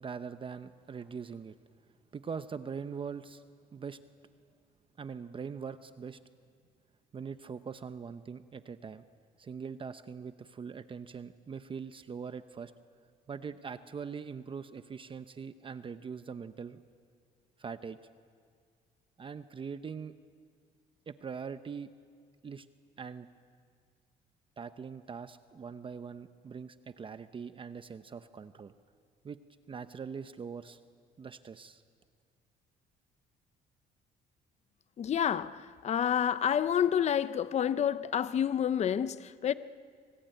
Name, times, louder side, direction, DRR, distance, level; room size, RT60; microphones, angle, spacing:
voice 1, 0.0-1.5 2.1-3.4 3.7-4.0 5.0-6.2 7.1-9.0 9.4-12.7 13.3-16.8 17.6-18.0 19.2-20.1 21.1-21.9 22.4-22.7 23.0-23.3 24.6-28.7 29.2-29.4 29.7-30.8 31.2-31.8, right 6 dB, 30° right, 0.8 m, -42 dB
voice 2, 35.0-39.5, left 9 dB, 40° left, 0.7 m, -29 dB
25.5 x 24.5 x 9.1 m
cardioid pair, 110°, 17 cm